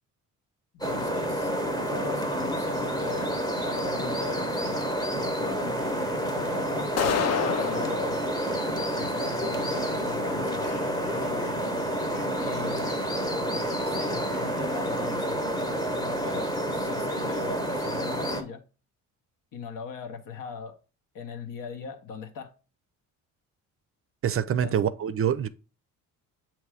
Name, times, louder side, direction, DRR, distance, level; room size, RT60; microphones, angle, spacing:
voice 1, 0.8-1.5 1.9-3.3 3.6-4.8 5.1-6.9 7.6-8.2 8.9-11.6 12.4-12.9 13.8-15.4 15.9-18.6 19.5-20.8 21.1-22.5 24.5-24.8, left 5 dB, 70° left, 1.2 m, -40 dB
sound 1, 0.8-18.4, equal, 10° left, 1.1 m, -29 dB
sound 2, 5.7-15.3, left 3 dB, 35° left, 1.1 m, -46 dB
sound 3, 7.0-8.0, left 7 dB, 50° left, 0.6 m, -26 dB
voice 2, 24.2-25.5, right 9 dB, 40° right, 0.5 m, -25 dB
7.2 x 3.1 x 4.8 m
cardioid pair, 105°, 34 cm